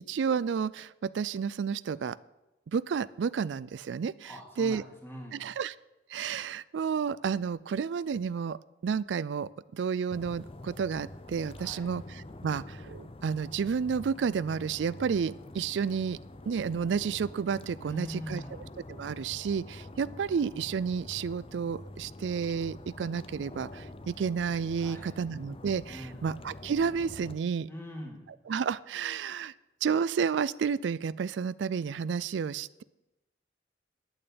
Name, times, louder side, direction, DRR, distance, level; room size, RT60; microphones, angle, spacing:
voice 1, 0.1-2.2 2.7-4.8 5.3-5.8 6.1-16.2 16.5-27.7 28.5-29.5 29.8-32.8, right 6 dB, 85° right, 19 dB, 0.4 m, -31 dB
voice 2, 4.2-5.4 11.6-11.9 17.8-18.6 24.8-25.1 25.9-26.2 27.7-28.3, equal, 15° left, 0 dB, 2.5 m, -42 dB
sound 1, 10.1-27.4, left 1 dB, 30° left, 0.6 m, -46 dB
9.2 x 8.7 x 8.6 m, 0.99 s
head